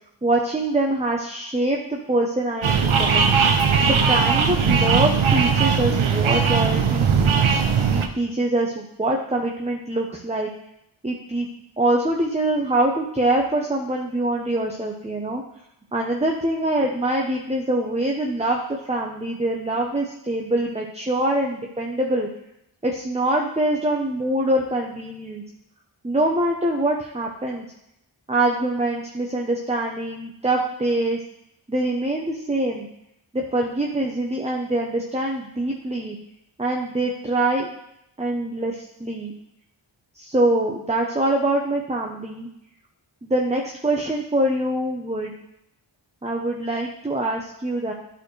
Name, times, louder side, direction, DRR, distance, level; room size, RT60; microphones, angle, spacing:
voice 1, 0.2-3.3 3.8-7.4 7.9-10.5 11.0-11.5 11.8-15.4 15.9-22.3 22.8-25.4 26.0-27.6 28.3-31.2 31.7-32.9 33.3-36.2 36.6-37.7 38.2-39.3 40.1-42.5 43.2-45.3 46.2-47.9, right 1 dB, 15° right, 0 dB, 0.8 m, -24 dB
sound 1, 2.6-8.1, right 6 dB, 80° right, 0.8 m, -19 dB
10.5 x 4.3 x 3.2 m, 0.78 s
wide cardioid pair, 80°, 47 cm